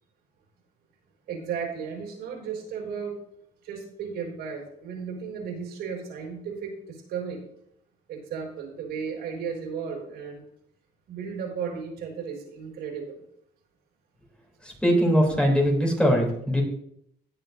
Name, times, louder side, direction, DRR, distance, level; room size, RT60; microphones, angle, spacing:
voice 1, 1.3-3.2 3.6-7.4 8.1-10.4 11.1-13.2 16.1-16.2, right 6 dB, 75° right, 0 dB, 4.7 m, -34 dB
voice 2, 14.8-16.6, equal, 5° left, -1 dB, 3.2 m, -21 dB
18.0 x 7.9 x 2.6 m, 0.71 s
cardioid pair, 110°, 17 cm